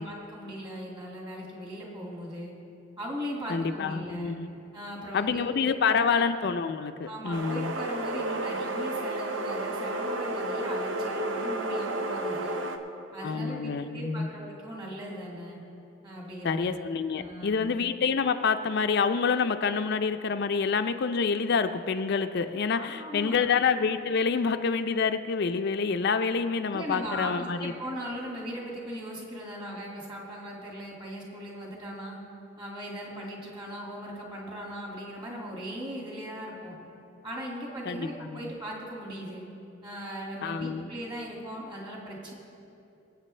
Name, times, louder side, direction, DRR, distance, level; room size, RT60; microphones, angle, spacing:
voice 1, 0.0-2.5 3.0-4.3 4.7-6.2 7.1-12.6 13.1-15.6 16.0-16.7 17.1-17.7 22.7-23.5 26.7-32.2 32.6-36.8 37.2-39.4 39.8-42.3, equal, 25° right, -3 dB, 2.3 m, -38 dB
voice 2, 3.5-4.5 5.1-7.7 13.2-14.3 16.4-27.7 37.9-38.4 40.4-40.9, left 5 dB, 60° left, 8 dB, 0.4 m, -27 dB
sound 1, 7.3-12.8, right 1 dB, 85° right, 0.8 m, -32 dB
23.5 x 8.1 x 3.3 m, 2.8 s
head